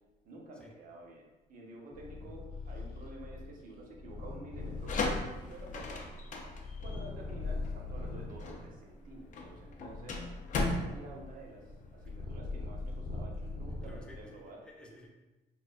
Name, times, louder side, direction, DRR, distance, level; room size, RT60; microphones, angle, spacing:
voice 1, 0.2-6.0 6.8-10.2 10.6-11.6 11.9-14.6, right 2 dB, 55° right, -1 dB, 0.8 m, -50 dB
Purr, 1.9-8.4 9.1-14.3, left 3 dB, 70° left, 0.9 m, -41 dB
sound 1, 4.6-12.2, left 2 dB, 50° left, 0.6 m, -37 dB
voice 2, 13.9-15.1, equal, 5° left, -1 dB, 0.6 m, -54 dB
4.6 x 2.4 x 2.5 m, 1.1 s
cardioid pair, 110°, 17 cm